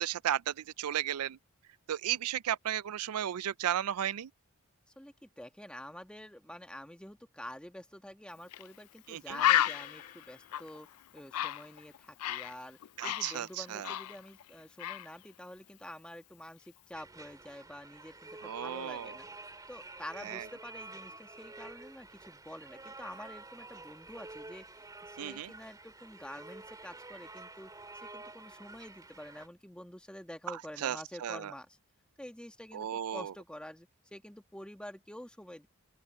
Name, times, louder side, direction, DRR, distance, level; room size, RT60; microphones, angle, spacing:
voice 1, 0.0-1.4 1.9-4.3 9.1-9.4 13.0-13.9 18.4-19.1 20.3-20.4 25.2-25.5 30.5-30.6 30.8-31.5 32.7-33.3, right 10 dB, 85° right, 0.4 m, -34 dB
voice 2, 4.9-10.9 11.1-19.3 19.7-24.7 25.0-31.8 32.2-35.7, left 1 dB, 5° left, 1.7 m, -48 dB
Bird, 8.5-8.7 9.0-9.1 9.4-12.5 12.8-14.5 14.8-15.1, left 12 dB, 80° left, 0.4 m, -32 dB
sound 1, 9.3-11.1, left 6 dB, 45° left, 2.9 m, -51 dB
sound 2, 16.9-29.5, right 2 dB, 15° right, 2.6 m, -49 dB
open air
head